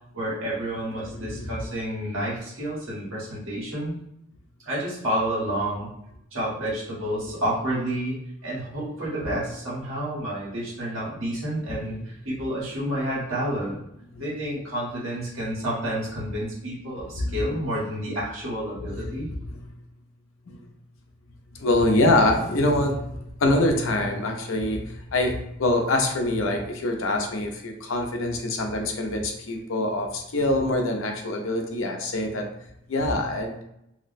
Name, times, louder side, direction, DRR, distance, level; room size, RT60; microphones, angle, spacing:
voice 1, 0.1-3.9 4.6-5.9 6.3-13.8 14.2-19.3, right 1 dB, 80° right, -6 dB, 1.4 m, -30 dB
voice 2, 21.5-32.4 32.9-33.6, left 1 dB, 75° left, 3 dB, 0.6 m, -24 dB
2.8 x 2.1 x 4.0 m, 0.81 s
head